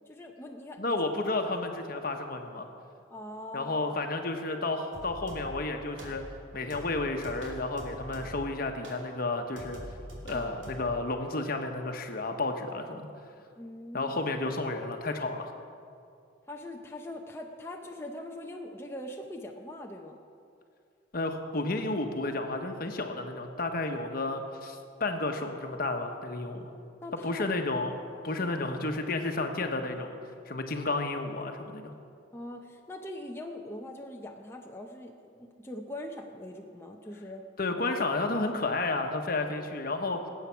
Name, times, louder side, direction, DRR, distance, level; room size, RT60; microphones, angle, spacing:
voice 1, 0.1-1.0 3.1-4.0 10.3-10.5 12.8-13.0 13.6-14.2 16.5-20.2 27.0-27.5 32.3-37.4, left 1 dB, 15° left, 1 dB, 0.7 m, -42 dB
voice 2, 0.8-2.7 3.5-6.2 6.5-9.8 10.2-13.1 13.9-15.5 21.1-26.7 27.2-28.0 28.2-30.1 30.5-31.9 37.6-40.2, left 2 dB, 50° left, 5 dB, 1.1 m, -31 dB
sound 1, 4.9-5.7 6.0-6.4 6.7-8.5 8.8-9.1 9.6-10.9, equal, 80° right, 2.8 m, -44 dB
19.0 x 8.5 x 5.8 m, 2.4 s
head